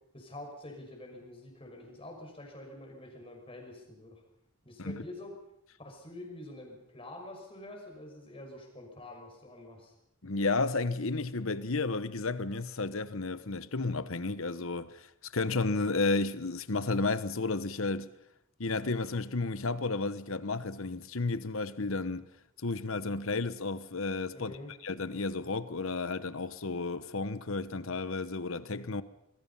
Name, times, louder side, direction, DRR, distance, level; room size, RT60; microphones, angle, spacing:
voice 1, 0.1-4.2 4.6-5.3 5.8-9.9 24.3-24.7, left 1 dB, 25° left, 5.8 m, -46 dB
voice 2, 10.2-15.0 15.3-18.1 18.6-22.3 22.6-24.6 24.8-29.0, left 3 dB, 60° left, 1.1 m, -32 dB
25.5 x 22.0 x 5.6 m
head